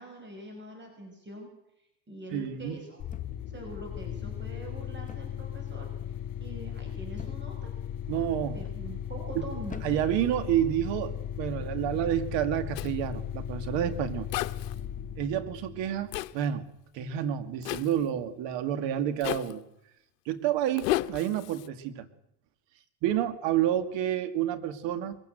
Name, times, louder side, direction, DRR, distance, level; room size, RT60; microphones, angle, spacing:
voice 1, 0.0-1.5 2.1-3.0 3.5-5.9 6.4-7.7 8.5-9.9, right 1 dB, 20° right, 3 dB, 5.8 m, -44 dB
voice 2, 2.3-2.8 8.1-8.6 9.8-14.3 15.2-16.7 16.9-19.6 20.3-22.1 23.0-25.2, right 11 dB, 60° right, 10 dB, 2.2 m, -29 dB
sound 1, 3.0-16.5, left 9 dB, 40° left, 4.9 m, -37 dB
sound 2, 3.1-3.6 5.1-5.5 5.7-6.2 7.2-7.7 8.4-8.8 9.6-10.3 11.2-11.5, left 5 dB, 15° left, 1.2 m, -46 dB
Zipper (clothing), 12.7-12.9 14.3-14.7 16.1-16.3 17.6-17.9 19.2-19.5 20.8-21.7, left 16 dB, 80° left, 1.0 m, -32 dB
22.5 x 16.0 x 8.0 m, 0.82 s
supercardioid pair, 95°, 49 cm